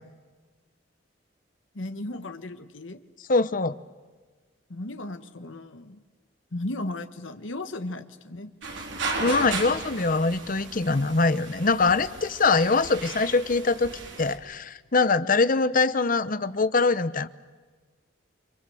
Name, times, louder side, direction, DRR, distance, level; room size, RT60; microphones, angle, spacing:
voice 1, 1.7-3.0 4.7-6.0 6.5-8.5, left 2 dB, 85° left, 9 dB, 1.4 m, -35 dB
voice 2, 3.3-3.8 9.2-17.3, left 3 dB, 45° left, 14 dB, 0.9 m, -23 dB
sound 1, 8.6-14.4, right 3 dB, 75° right, 4.2 m, -35 dB
30.0 x 25.0 x 7.8 m, 1.4 s
head